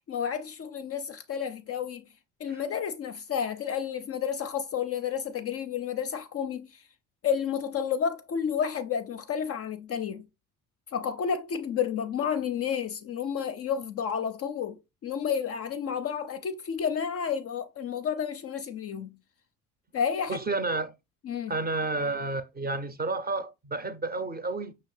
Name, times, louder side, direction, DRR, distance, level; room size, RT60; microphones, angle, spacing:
voice 1, 0.1-2.0 2.4-6.8 7.2-10.2 10.9-14.8 15.0-19.2 19.9-20.4 21.2-21.5, left 7 dB, 35° left, 0.5 m, -31 dB
voice 2, 20.3-20.9 21.5-24.7, right 3 dB, 20° right, 0.6 m, -31 dB
5.5 x 2.8 x 3.2 m
figure-of-eight pair, 55°, 44 cm